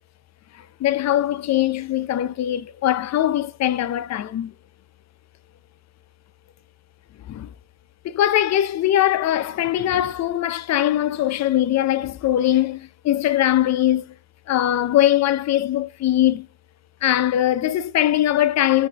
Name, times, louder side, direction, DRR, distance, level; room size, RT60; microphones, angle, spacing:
voice 1, 0.6-4.5 7.3-7.5 8.0-14.0 14.5-16.5 17.0-18.9, left 12 dB, 60° left, 0.6 m, -21 dB
5.8 x 2.8 x 3.3 m
cardioid pair, 90°, 30 cm